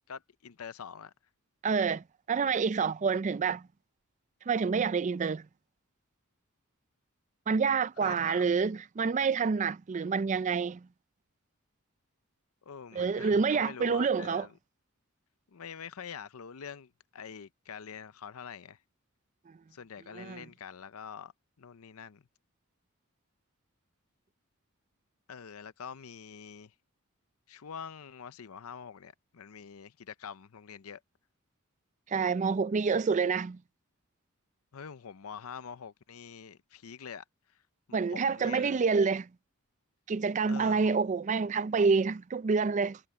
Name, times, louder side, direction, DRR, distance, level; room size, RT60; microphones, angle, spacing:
voice 1, 0.1-1.1 8.0-8.5 12.6-14.5 15.5-18.8 19.7-21.3 21.6-22.2 25.3-26.7 27.5-31.0 34.7-37.2 37.9-38.8 40.5-41.0, left 7 dB, 90° left, 0.6 m, -45 dB
voice 2, 1.6-3.6 4.5-5.4 7.5-10.8 12.9-14.5 20.1-20.4 32.1-33.6 37.9-39.3 40.1-43.0, right 5 dB, 35° right, 0.4 m, -28 dB
head